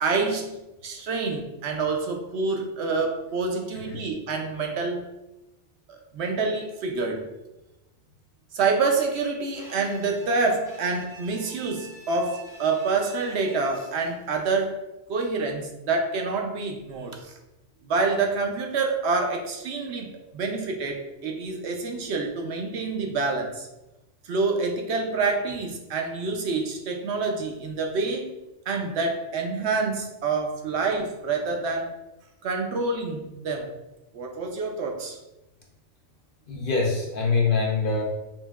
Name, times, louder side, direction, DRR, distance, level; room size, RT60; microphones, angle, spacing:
voice 1, 0.0-5.0 5.9-7.3 8.5-14.8 15.1-17.3 17.8-23.7 24.2-28.3 28.7-31.9 32.4-33.7 34.1-35.2, right 4 dB, 65° right, 2 dB, 0.8 m, -27 dB
Bowed string instrument, 9.5-14.1, right 2 dB, 5° right, 0.7 m, -47 dB
voice 2, 36.5-38.0, left 4 dB, 55° left, -1 dB, 0.7 m, -24 dB
5.7 x 2.6 x 2.3 m, 0.98 s
omnidirectional pair, 1.3 m